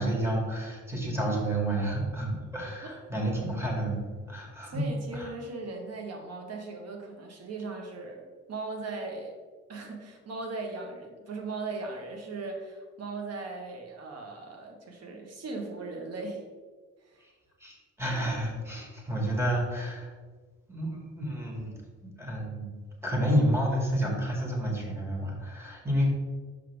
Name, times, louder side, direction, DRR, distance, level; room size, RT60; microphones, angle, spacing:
voice 1, 0.0-5.3 17.6-20.1 20.7-21.7 22.0-22.7 23.0-26.1, right 1 dB, 10° right, -1 dB, 1.7 m, -30 dB
voice 2, 4.7-8.2 8.5-9.3 9.7-16.4 17.0-17.2 21.7-21.8, right 3 dB, 55° right, 2 dB, 1.4 m, -38 dB
5.6 x 5.3 x 3.5 m, 1.5 s
cardioid pair, 90°, 30 cm